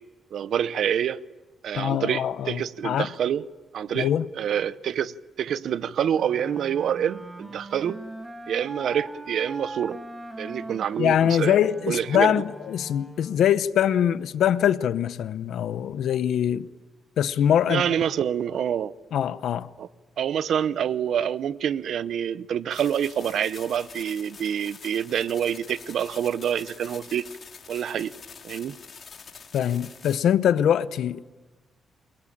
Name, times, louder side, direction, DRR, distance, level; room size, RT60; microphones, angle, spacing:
voice 1, 0.3-1.2 1.6-3.4 3.7-4.1 4.4-5.1 5.4-8.0 8.5-10.0 10.4-11.6 11.9-12.4 17.7-18.9 19.8-19.9 20.2-27.2 27.7-28.1 28.4-28.8, right 9 dB, 65° right, 0.8 m, -27 dB
voice 2, 1.7-3.1 3.9-4.3 11.0-16.7 17.2-17.8 19.1-19.7 29.5-31.2, left 9 dB, 75° left, 0.9 m, -23 dB
Wind instrument woodwind instrument, 6.1-13.6, right 2 dB, 15° right, 2.2 m, -41 dB
sound 1, 22.7-30.2, left 6 dB, 40° left, 2.9 m, -46 dB
29.0 x 23.0 x 8.8 m
cardioid pair, 145°, 0 cm